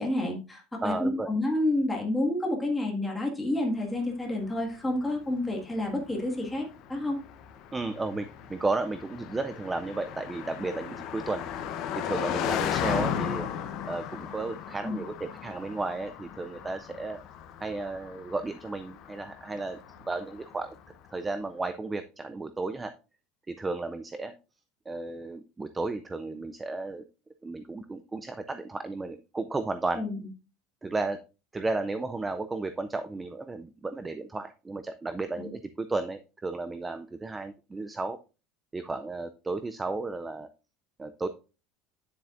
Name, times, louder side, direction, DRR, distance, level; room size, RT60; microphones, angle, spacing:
voice 1, 0.0-7.2 14.8-15.0 30.0-30.2 35.4-35.5, left 1 dB, 5° left, -1 dB, 1.8 m, -29 dB
voice 2, 0.8-1.3 7.7-11.5 11.9-13.5 13.9-17.2 17.6-19.8 20.1-20.8 21.1-22.9 23.5-24.3 24.9-27.0 27.4-30.0 30.8-31.2 31.5-38.2 38.7-40.5 41.0-41.3, right 3 dB, 10° right, 10 dB, 0.3 m, -33 dB
Car passing by, 4.4-20.9, left 9 dB, 45° left, 0.8 m, -36 dB
9.5 x 7.4 x 2.5 m, 0.31 s
cardioid pair, 170°, 0 cm